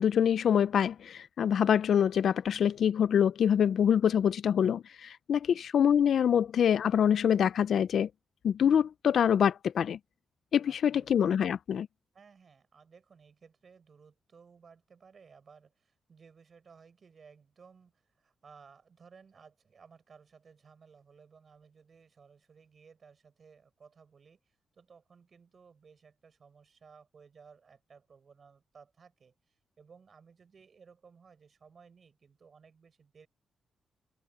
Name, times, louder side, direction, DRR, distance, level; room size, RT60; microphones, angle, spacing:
voice 1, 0.0-8.1 8.4-10.0 10.5-11.9, left 8 dB, 55° left, 0.3 m, -25 dB
voice 2, 10.7-11.1 12.1-33.3, right 5 dB, 35° right, 6.0 m, -58 dB
wide cardioid pair, 175°, 0 cm